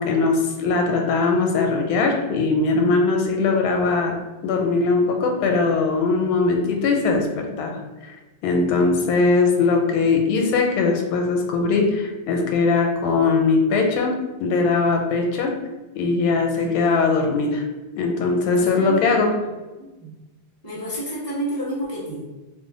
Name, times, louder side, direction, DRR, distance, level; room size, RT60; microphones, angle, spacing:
voice 1, 0.0-4.2 4.4-8.1 8.4-14.1 14.4-15.5 15.9-17.6 18.0-19.3, left 4 dB, 90° left, 2 dB, 1.4 m, -20 dB
voice 2, 18.6-19.5 19.8-20.1 20.6-22.2, right 1 dB, 15° right, -8 dB, 0.7 m, -30 dB
3.4 x 2.1 x 3.8 m, 1.1 s
omnidirectional pair, 2.2 m